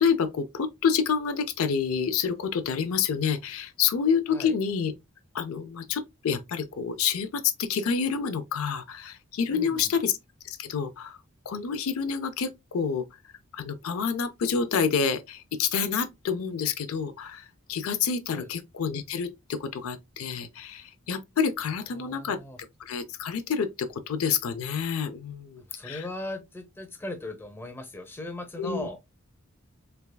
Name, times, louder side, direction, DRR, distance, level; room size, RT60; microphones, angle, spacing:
voice 1, 0.0-4.9 5.3-10.1 10.4-11.2 11.5-13.0 13.5-22.4 22.8-26.0 28.6-28.9, left 6 dB, 75° left, 0.4 m, -28 dB
voice 2, 9.5-10.0 18.3-18.5 21.9-22.6 25.6-29.0, left 2 dB, 10° left, 0.7 m, -38 dB
3.4 x 3.2 x 2.3 m
head